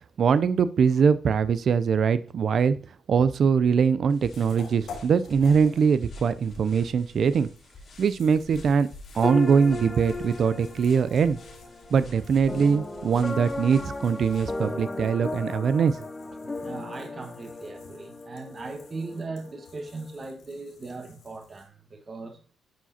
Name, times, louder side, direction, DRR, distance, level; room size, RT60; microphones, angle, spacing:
voice 1, 0.2-2.8 3.1-7.5 8.0-8.9 9.1-11.4 11.9-16.0, right 6 dB, 55° right, 0.4 m, -22 dB
sound 1, 4.1-14.7, left 2 dB, 50° left, 2.4 m, -49 dB
sound 2, 4.2-5.9 6.2-21.7, left 5 dB, 80° left, 3.8 m, -51 dB
sound 3, 9.2-20.2, left 2 dB, 20° left, 0.8 m, -36 dB
voice 2, 16.6-22.4, right 3 dB, 35° right, 1.3 m, -38 dB
11.5 x 4.8 x 2.7 m
cardioid pair, 90°, 0 cm